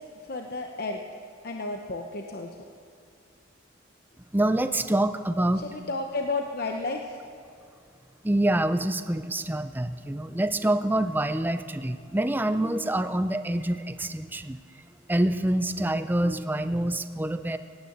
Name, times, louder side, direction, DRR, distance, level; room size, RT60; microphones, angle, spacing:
voice 1, 0.2-1.0 1.4-2.5 5.6-7.2, left 3 dB, 50° left, 3 dB, 0.8 m, -32 dB
voice 2, 4.3-5.6 8.2-14.6 15.1-17.6, right 1 dB, 10° right, 10 dB, 0.4 m, -26 dB
17.0 x 9.6 x 7.9 m, 2.3 s
head